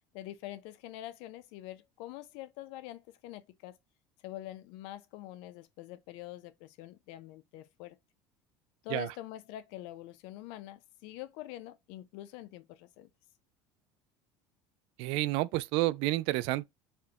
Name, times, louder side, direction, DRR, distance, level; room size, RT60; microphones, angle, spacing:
voice 1, 0.1-3.8 4.2-8.0 8.8-13.1, left 14 dB, 70° left, 0.5 m, -45 dB
voice 2, 15.0-16.6, right 18 dB, 65° right, 0.3 m, -30 dB
4.3 x 2.2 x 2.8 m
cardioid pair, 150°, 10 cm